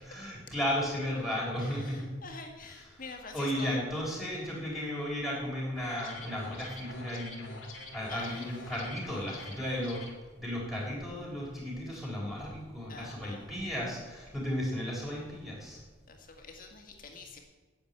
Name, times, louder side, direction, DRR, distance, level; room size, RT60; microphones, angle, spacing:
voice 1, 0.1-2.1 2.7-3.0 3.3-7.6 7.9-10.0 10.3-15.8, equal, ahead, -5 dB, 3.7 m, -34 dB
voice 2, 1.6-3.8 8.1-8.5 12.9-13.5 16.1-17.4, left 4 dB, 45° left, 3 dB, 2.0 m, -46 dB
sound 1, 5.8-10.1, left 2 dB, 85° left, 2.4 m, -46 dB
10.5 x 7.8 x 8.9 m, 1.3 s
head